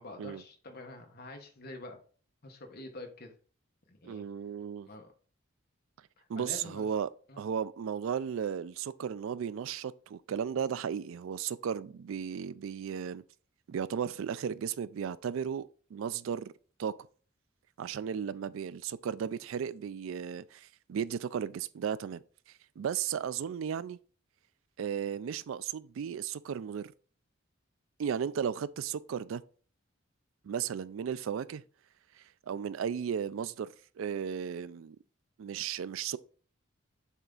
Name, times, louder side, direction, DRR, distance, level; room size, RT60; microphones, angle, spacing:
voice 1, 0.0-2.0 2.4-3.3 3.9-4.2 4.9-5.1 6.2-6.9 7.3-7.4, left 2 dB, 50° left, 1.1 m, -46 dB
voice 2, 4.0-4.9 6.3-7.1 7.4-13.2 13.7-16.5 16.8-16.9 17.8-22.2 22.8-24.0 24.8-26.9 28.0-29.4 30.4-31.6 32.5-33.7 34.0-35.0 35.4-36.2, right 7 dB, 75° right, 0.3 m, -35 dB
7.2 x 3.5 x 3.9 m
head